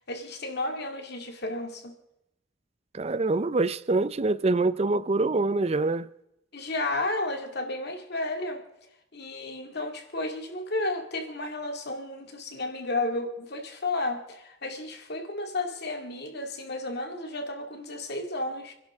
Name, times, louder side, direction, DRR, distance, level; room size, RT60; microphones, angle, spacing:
voice 1, 0.1-1.9 6.5-8.6 9.1-18.7, left 2 dB, 55° left, 2.2 m, -32 dB
voice 2, 2.9-6.1, right 3 dB, 30° right, 0.5 m, -25 dB
29.5 x 11.0 x 3.6 m
head